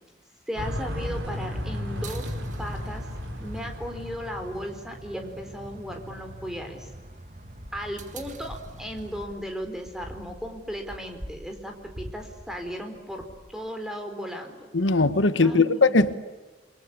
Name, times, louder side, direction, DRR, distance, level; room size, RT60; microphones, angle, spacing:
voice 1, 0.5-3.1 3.4-6.9 7.7-14.7 15.4-16.1, equal, 5° right, 4 dB, 4.2 m, -36 dB
sound 1, 0.6-4.9, left 1 dB, 85° right, 5.5 m, -34 dB
sound 2, 1.0-9.3, right 2 dB, 40° right, 2.0 m, -45 dB
sound 3, 7.5-13.7, equal, 25° right, 5.2 m, -45 dB
voice 2, 14.7-16.1, left 3 dB, 85° left, 12 dB, 1.3 m, -20 dB
28.5 x 24.0 x 8.6 m, 1.2 s
head